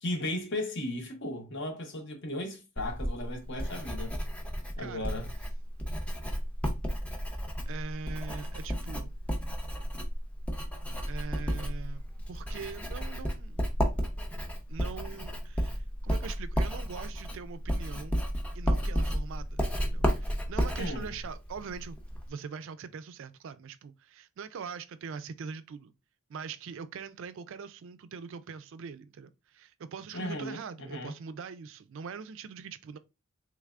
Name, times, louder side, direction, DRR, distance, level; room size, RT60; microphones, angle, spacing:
voice 1, 0.0-4.2 4.8-5.3 20.8-21.1 30.1-31.1, left 1 dB, 55° left, 0.9 m, -36 dB
Writing, 2.8-22.3, equal, 5° left, 0.5 m, -32 dB
voice 2, 4.8-5.1 7.7-9.2 11.1-12.0 12.3-13.6 14.7-18.2 18.5-22.0 22.3-25.9 26.3-33.0, right 6 dB, 60° right, 0.3 m, -42 dB
3.3 x 3.3 x 2.4 m
head